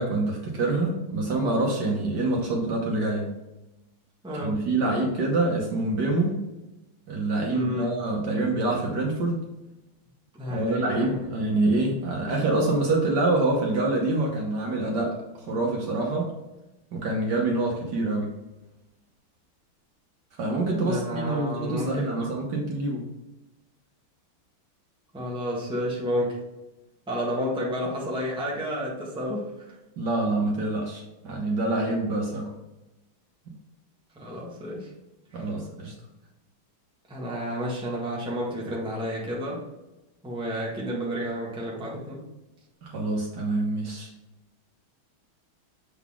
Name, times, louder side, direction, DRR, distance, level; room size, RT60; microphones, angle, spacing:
voice 1, 0.0-3.3 4.3-6.4 7.1-9.4 10.4-15.1 15.5-16.3 16.9-18.3 20.4-23.0 30.0-32.5 35.3-35.9 42.8-44.1, right 2 dB, 60° right, -1 dB, 1.6 m, -26 dB
voice 2, 4.2-4.6 7.5-8.0 10.4-11.2 20.7-22.1 25.1-26.4 27.1-29.8 34.1-34.9 35.3-35.5 37.1-39.6 40.2-42.2, equal, 5° right, -4 dB, 1.3 m, -31 dB
7.0 x 4.0 x 3.6 m, 1.0 s
omnidirectional pair, 2.3 m